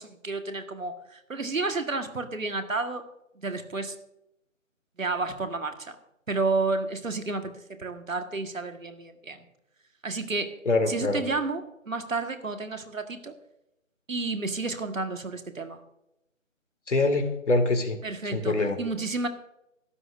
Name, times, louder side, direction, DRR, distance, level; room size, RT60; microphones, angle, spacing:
voice 1, 0.0-3.0 3.4-3.9 5.0-6.0 6.3-9.4 10.0-10.5 10.9-11.6 11.9-13.3 14.1-15.8 18.0-19.3, right 3 dB, 80° right, 7 dB, 1.7 m, -31 dB
voice 2, 10.7-11.2 16.9-18.0 18.3-18.8, left 2 dB, 60° left, 6 dB, 2.3 m, -24 dB
18.0 x 12.5 x 2.6 m, 0.84 s
figure-of-eight pair, 160°, 40 cm